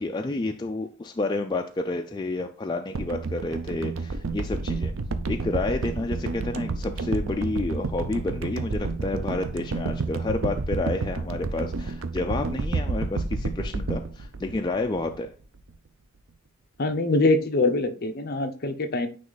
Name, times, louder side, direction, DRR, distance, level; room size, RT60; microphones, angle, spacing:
voice 1, 0.0-4.9 5.3-15.3, left 2 dB, 20° left, 4 dB, 0.3 m, -30 dB
sound 1, 2.9-15.3 15.6-15.7, right 3 dB, 65° right, 0.6 m, -30 dB
voice 2, 16.8-19.1, left 2 dB, 45° left, 7 dB, 0.7 m, -23 dB
9.4 x 3.1 x 3.9 m, 0.39 s
head